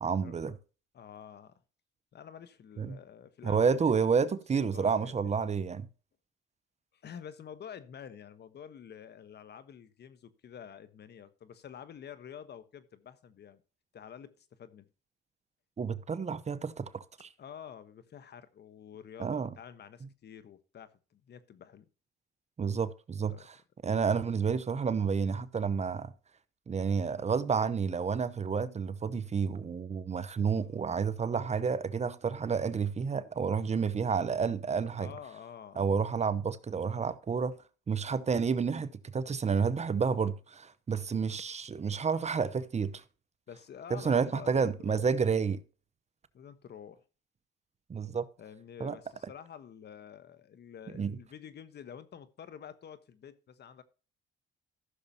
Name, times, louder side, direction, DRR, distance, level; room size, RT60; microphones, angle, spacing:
voice 1, 0.0-0.6 2.8-3.0 3.4-5.9 15.8-17.3 19.2-19.5 22.6-23.3 23.8-26.1 26.7-35.1 35.8-37.6 37.9-43.0 43.9-45.6 47.9-48.2 48.8-49.0 51.0-51.2, right 6 dB, 35° right, 0.8 m, -30 dB
voice 2, 0.9-1.5 2.1-3.8 4.5-5.1 6.9-13.6 13.9-14.8 17.4-21.9 23.2-23.5 35.0-35.8 43.5-45.1 46.3-47.0 48.4-53.8, left 8 dB, 55° left, 1.2 m, -48 dB
14.5 x 6.7 x 2.8 m
cardioid pair, 90°, 20 cm